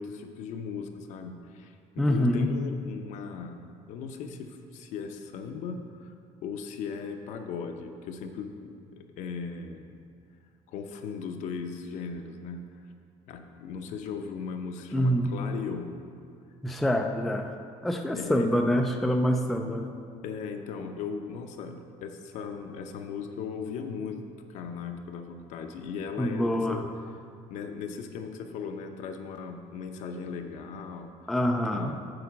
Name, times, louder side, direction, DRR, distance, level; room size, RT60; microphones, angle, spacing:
voice 1, 0.0-6.1 6.4-10.0 10.7-12.6 13.3-16.0 18.1-18.6 20.2-24.2 24.5-26.9 27.5-31.3 31.7-32.0, left 5 dB, 65° left, 5 dB, 0.7 m, -38 dB
voice 2, 2.0-2.5 14.9-15.3 16.6-17.5 17.8-19.9 26.2-26.8 31.3-31.9, equal, ahead, 3 dB, 0.3 m, -26 dB
7.9 x 4.9 x 7.2 m, 2.3 s
cardioid pair, 175°, 13 cm